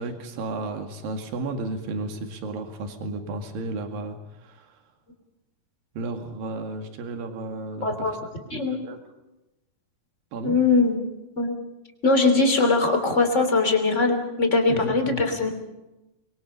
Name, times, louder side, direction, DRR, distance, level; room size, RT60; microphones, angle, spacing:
voice 1, 0.0-4.7 6.0-8.2 8.5-8.6 8.9-9.0 10.3-10.6 14.7-15.2, right 2 dB, 70° right, 5 dB, 3.9 m, -33 dB
voice 2, 7.8-8.1 8.5-8.8 10.4-11.0 11.4-11.5 12.0-15.5, left 3 dB, 20° left, 5 dB, 3.0 m, -21 dB
25.5 x 22.5 x 5.5 m, 0.98 s
omnidirectional pair, 4.2 m